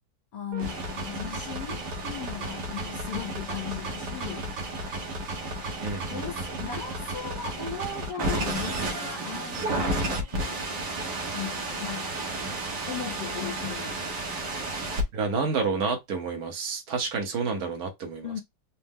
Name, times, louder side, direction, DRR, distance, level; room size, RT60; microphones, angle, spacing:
voice 1, 0.3-4.5 6.0-10.6 11.3-12.1 12.9-14.1 18.2-18.4, left 8 dB, 80° left, 1.5 m, -37 dB
sound 1, 0.5-15.0, right 2 dB, 80° right, 1.6 m, -32 dB
voice 2, 5.8-6.2 15.1-18.4, right 4 dB, 65° right, 1.4 m, -29 dB
4.3 x 2.0 x 3.5 m
omnidirectional pair, 1.8 m